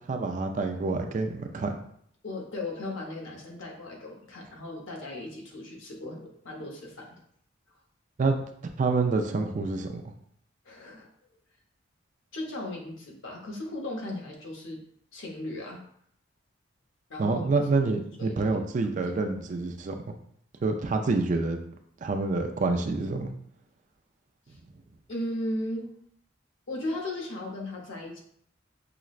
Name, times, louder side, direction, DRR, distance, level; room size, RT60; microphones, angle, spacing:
voice 1, 0.0-1.8 8.2-8.4 8.8-10.0 17.2-20.0 20.6-21.6 22.0-23.3, right 3 dB, 40° right, 5 dB, 0.3 m, -27 dB
voice 2, 2.2-7.1 10.6-11.1 12.3-14.8 15.1-15.8 17.1-17.5 18.2-18.6 18.8-19.0 24.5-24.6 25.1-25.9 26.7-28.2, left 1 dB, 85° left, 0 dB, 0.9 m, -36 dB
5.7 x 2.0 x 2.4 m, 0.66 s
head